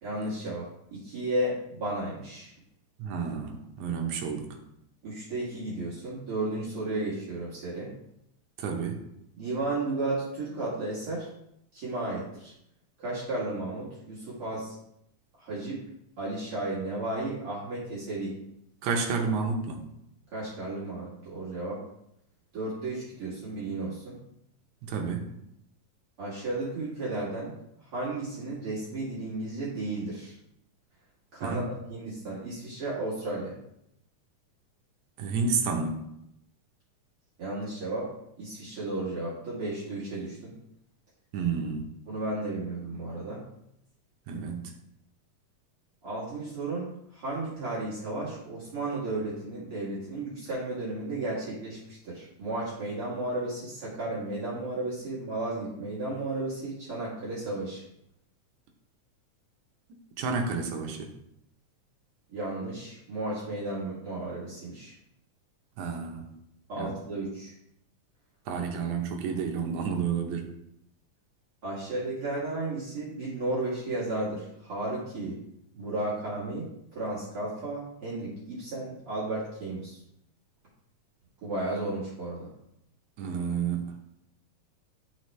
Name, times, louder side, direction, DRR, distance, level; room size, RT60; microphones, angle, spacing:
voice 1, 0.0-2.5 5.0-7.9 9.4-11.3 11.7-12.5 13.0-14.7 15.4-15.9 16.2-18.3 20.3-21.8 22.5-24.2 26.2-27.5 27.8-30.4 31.3-33.6 37.4-38.1 38.4-40.6 42.1-43.4 46.0-57.8 62.3-64.9 66.7-67.5 71.6-75.4 75.7-80.0 81.4-82.5, right 2 dB, 50° right, -8 dB, 2.3 m, -33 dB
voice 2, 3.0-4.6 8.6-9.0 18.8-19.8 24.9-25.3 31.4-31.6 35.2-36.1 41.3-41.9 44.3-44.6 60.2-61.1 65.8-66.3 66.8-66.9 68.5-70.5 83.2-83.9, right 5 dB, 75° right, 2 dB, 2.1 m, -30 dB
11.0 x 4.1 x 3.2 m, 0.79 s
omnidirectional pair, 3.6 m